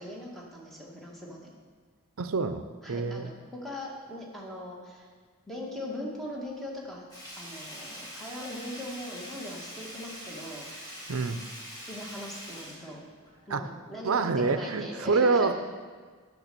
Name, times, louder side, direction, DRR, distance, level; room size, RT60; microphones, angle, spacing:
voice 1, 0.0-1.4 2.8-5.1 5.5-7.1 7.4-11.1 11.9-13.1 13.5-15.5, left 1 dB, ahead, -4 dB, 1.8 m, -40 dB
voice 2, 2.2-2.6 2.9-3.3 11.1-11.4 13.5-13.6 14.0-15.5, right 4 dB, 65° right, 10 dB, 0.6 m, -26 dB
Sink (filling or washing), 7.1-13.6 14.0-14.1, equal, 15° left, 2.2 m, -44 dB
9.0 x 6.6 x 6.8 m, 1.6 s
head